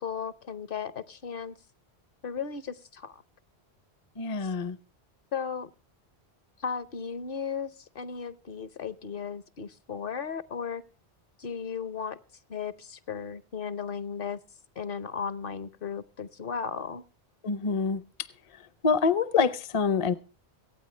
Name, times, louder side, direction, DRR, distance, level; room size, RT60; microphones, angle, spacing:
voice 1, 0.0-1.5 2.2-3.2 5.3-5.7 6.6-10.8 11.4-12.2 12.5-14.4 14.8-17.0, left 6 dB, 60° left, 0.9 m, -35 dB
voice 2, 4.2-4.8 17.4-18.0 18.5-20.1, left 5 dB, 35° left, 0.6 m, -26 dB
24.5 x 9.0 x 3.2 m
omnidirectional pair, 1.1 m